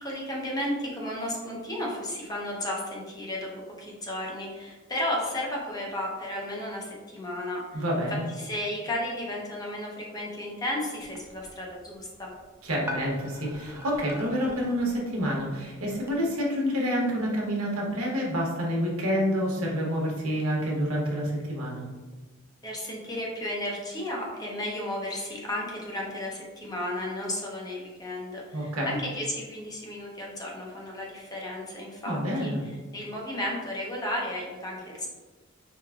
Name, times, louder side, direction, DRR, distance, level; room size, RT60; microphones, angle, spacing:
voice 1, 0.0-3.5 3.8-7.8 8.4-12.3 22.6-32.5 32.9-35.1, left 1 dB, 20° left, -3 dB, 0.7 m, -33 dB
voice 2, 7.7-8.2 12.6-21.9 28.5-28.9 32.0-32.6, equal, 85° right, -3 dB, 0.9 m, -28 dB
sound 1, 11.0-16.2, left 1 dB, 10° right, 0.3 m, -44 dB
4.7 x 2.4 x 2.3 m, 1.3 s
head